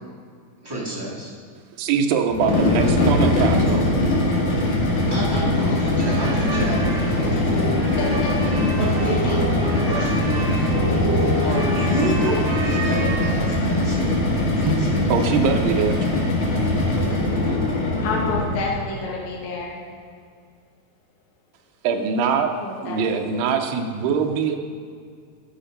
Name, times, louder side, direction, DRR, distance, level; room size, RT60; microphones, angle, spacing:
voice 1, 0.6-1.3 5.1-8.0 8.4-10.8 11.4-15.0, right 1 dB, 20° right, -8 dB, 0.6 m, -30 dB
voice 2, 1.8-4.0 14.7-16.0 21.8-22.5 22.8-24.6, right 6 dB, 85° right, 3 dB, 2.7 m, -22 dB
sound 1, 2.3-18.7, left 1 dB, 55° left, 2.9 m, -21 dB
sound 2, 5.9-13.8, equal, 55° right, 2.0 m, -28 dB
voice 3, 8.0-8.3 18.0-19.8 22.6-23.2, left 3 dB, 75° left, -4 dB, 3.1 m, -29 dB
11.5 x 5.8 x 5.1 m, 2.2 s
omnidirectional pair, 4.5 m